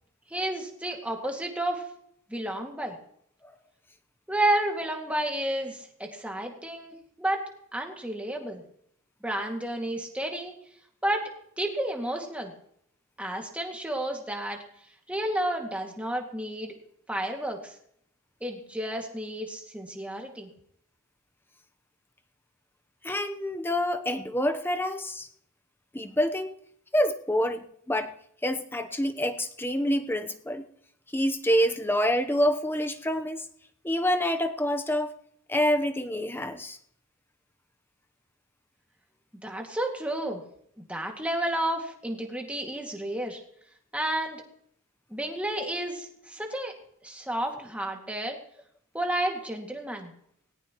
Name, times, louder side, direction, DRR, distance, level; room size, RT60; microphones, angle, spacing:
voice 1, 0.3-1.9 2.3-3.0 4.3-7.4 7.7-8.6 9.2-10.6 11.0-11.3 11.6-12.5 13.2-14.6 15.1-16.7 17.1-17.8 18.4-20.5 39.4-40.4 40.8-43.4 43.9-44.4 45.1-46.7 47.0-48.4 48.9-50.1, right 1 dB, 5° right, 1 dB, 2.2 m, -31 dB
voice 2, 23.0-25.3 25.9-26.5 26.9-28.1 28.4-30.6 31.1-33.4 33.8-35.2 35.5-36.8, equal, 10° left, 7 dB, 0.9 m, -27 dB
19.0 x 18.5 x 3.1 m, 0.68 s
head